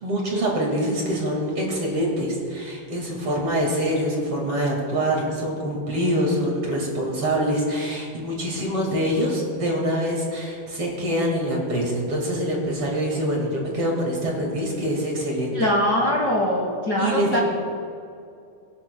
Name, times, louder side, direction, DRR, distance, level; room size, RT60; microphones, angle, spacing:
voice 1, 0.0-15.5 17.0-17.4, equal, 45° right, -1 dB, 2.4 m, -25 dB
voice 2, 15.5-17.4, left 1 dB, 65° left, -2 dB, 1.0 m, -22 dB
24.5 x 10.5 x 2.2 m, 2.4 s
omnidirectional pair, 4.2 m